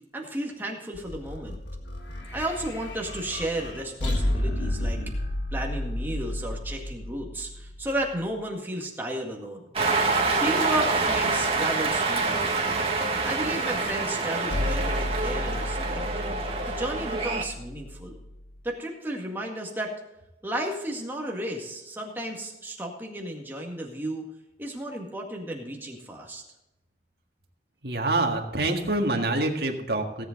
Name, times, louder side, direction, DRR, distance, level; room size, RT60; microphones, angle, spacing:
voice 1, 0.1-1.6 2.3-5.1 5.5-9.6 10.4-12.7 13.2-16.0 16.6-18.2 18.6-19.9 20.4-24.2 24.6-26.4, right 1 dB, 10° right, 0 dB, 1.9 m, -33 dB
sound 1, 0.9-8.2 14.5-18.6, left 1 dB, 85° left, 1.8 m, -32 dB
Cheering, 9.7-17.4, right 3 dB, 30° right, 1.8 m, -26 dB
voice 2, 27.8-30.2, right 2 dB, 60° right, 2 dB, 1.8 m, -26 dB
17.0 x 7.8 x 3.9 m, 0.92 s
head